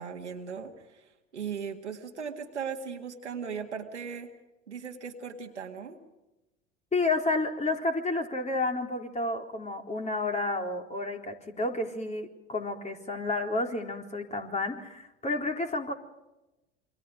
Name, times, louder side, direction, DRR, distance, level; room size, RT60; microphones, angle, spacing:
voice 1, 0.0-4.3 4.7-6.0, right 6 dB, 90° right, 4 dB, 2.1 m, -38 dB
voice 2, 6.9-15.9, left 2 dB, 20° left, 3 dB, 4.0 m, -31 dB
28.5 x 24.0 x 5.0 m, 0.97 s
hypercardioid pair, 70°, 34 cm